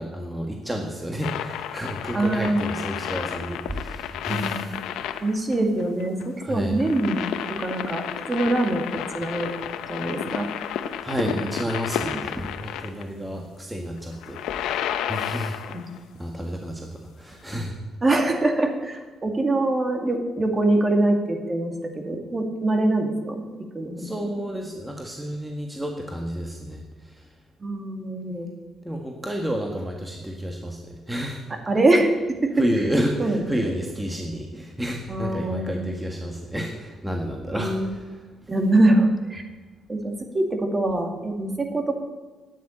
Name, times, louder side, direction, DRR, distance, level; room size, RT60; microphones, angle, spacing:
voice 1, 0.0-4.8 6.4-6.8 11.0-15.6 16.2-17.7 24.0-27.3 28.8-31.4 32.6-38.0, equal, 10° right, 1 dB, 1.7 m, -30 dB
sound 1, 1.2-13.0 14.1-16.0 17.5-17.6, left 10 dB, 90° left, 0.7 m, -32 dB
voice 2, 2.1-2.6 4.3-4.7 5.2-7.2 7.6-9.5 9.9-10.5 13.3-13.4 15.7-15.9 18.0-23.5 23.7-24.3 27.6-28.5 29.5-29.6 31.7-32.5 33.2-33.7 35.1-35.8 37.6-37.9 38.5-39.4 39.9-41.9, right 2 dB, 25° right, 4 dB, 2.2 m, -24 dB
9.6 x 9.3 x 8.9 m, 1.3 s
cardioid pair, 90°, 0 cm